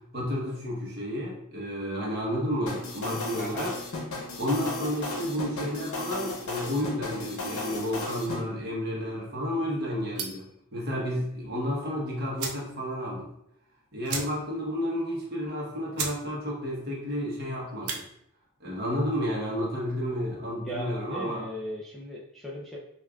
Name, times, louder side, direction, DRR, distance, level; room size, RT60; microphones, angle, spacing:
voice 1, 0.0-3.7 4.3-13.3 13.9-18.0 18.6-21.4, equal, 45° right, -3 dB, 1.0 m, -31 dB
sound 1, 2.7-8.4, left 2 dB, 70° left, 0.8 m, -35 dB
voice 2, 3.3-3.7 20.6-22.8, right 1 dB, ahead, -6 dB, 0.4 m, -37 dB
sound 2, 10.1-10.5 11.9-12.0 12.3-12.7 13.1-13.2 13.4-13.5 14.0-14.6 15.0-15.1 15.6-15.7 15.9-16.2 16.6-16.9 17.7-18.0, right 5 dB, 90° right, 0.6 m, -35 dB
5.3 x 2.4 x 2.3 m, 0.78 s
head